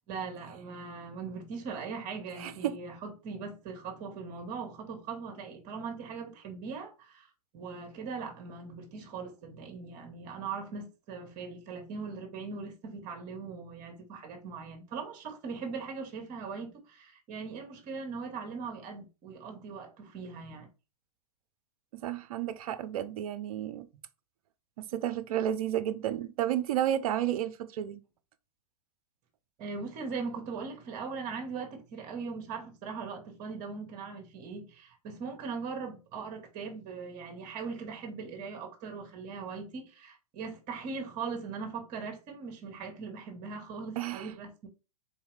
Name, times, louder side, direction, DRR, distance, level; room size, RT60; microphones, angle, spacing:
voice 1, 0.1-20.7 29.6-44.7, right 5 dB, 40° right, 1.3 m, -40 dB
voice 2, 2.3-2.8 21.9-23.9 24.8-28.0 44.0-44.3, right 11 dB, 65° right, 0.5 m, -32 dB
3.9 x 2.7 x 3.2 m
hypercardioid pair, 110°, 20 cm